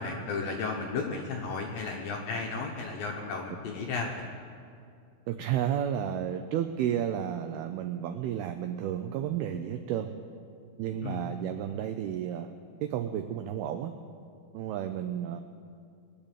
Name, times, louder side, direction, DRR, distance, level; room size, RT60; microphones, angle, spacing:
voice 1, 0.0-4.3 11.0-11.3, left 4 dB, 75° left, 1 dB, 2.1 m, -34 dB
voice 2, 5.3-10.1 10.8-12.5 12.8-13.9 14.5-15.4, right 10 dB, 90° right, 7 dB, 2.2 m, -32 dB
22.0 x 8.8 x 7.4 m, 2.4 s
omnidirectional pair, 5.2 m